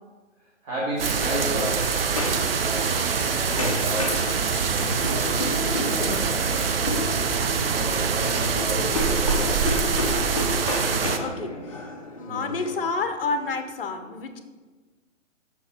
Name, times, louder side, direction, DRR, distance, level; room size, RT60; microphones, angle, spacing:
voice 1, 0.6-1.9 2.6-4.3 4.7-6.8 7.7-9.9 11.2-11.6 12.3-12.5, right 1 dB, 25° right, -6 dB, 1.1 m, -34 dB
Frying (food), 1.0-7.0, left 1 dB, 5° right, 0.9 m, -38 dB
sound 1, 1.0-11.2, right 5 dB, 50° right, 0.5 m, -24 dB
sound 2, 1.1-13.5, left 2 dB, 30° left, 0.4 m, -33 dB
voice 2, 11.2-11.9 12.2-14.4, left 4 dB, 45° left, 8 dB, 0.8 m, -30 dB
6.0 x 5.6 x 4.3 m, 1.3 s
hypercardioid pair, 155°, 39 cm